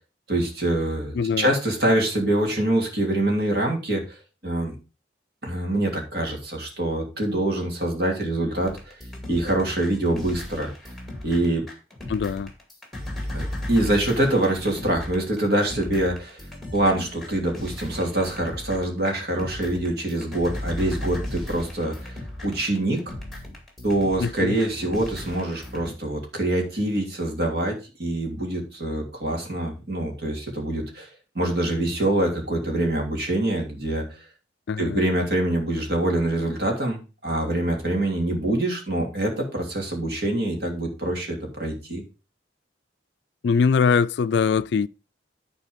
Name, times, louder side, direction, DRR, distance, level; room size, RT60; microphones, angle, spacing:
voice 1, 0.3-4.2 4.4-4.7 5.4-8.9 9.3-10.7 11.2-11.6 13.3-16.4 16.7-23.1 23.8-31.1 31.3-34.0 34.8-42.0, right 1 dB, 60° right, 2.9 m, -25 dB
voice 2, 1.1-1.5 12.1-12.5 24.2-24.6 34.7-35.0 43.4-44.9, left 5 dB, 70° left, 0.3 m, -22 dB
sound 1, 8.6-25.9, left 1 dB, ahead, 2.1 m, -36 dB
11.0 x 4.4 x 5.1 m
head